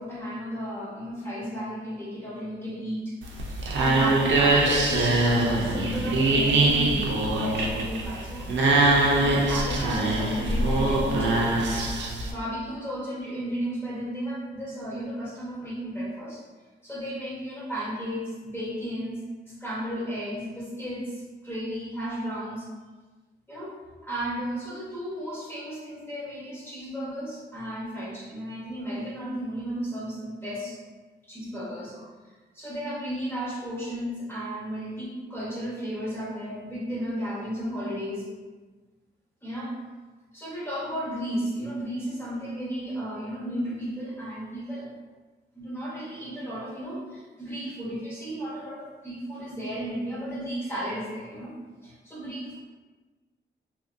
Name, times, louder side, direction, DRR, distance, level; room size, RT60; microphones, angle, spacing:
voice 1, 0.0-3.2 3.5-8.5 9.0-11.6 12.3-16.4 16.8-22.7 23.5-23.7 24.0-30.8 31.2-32.1 32.5-38.2 39.4-39.8 40.3-44.9 45.5-51.6 51.8-52.6, equal, 10° left, -7 dB, 1.0 m, -34 dB
sound 1, 3.2-12.3, right 2 dB, 75° right, 0.4 m, -23 dB
2.7 x 2.6 x 2.5 m, 1.3 s
cardioid pair, 90°, 19 cm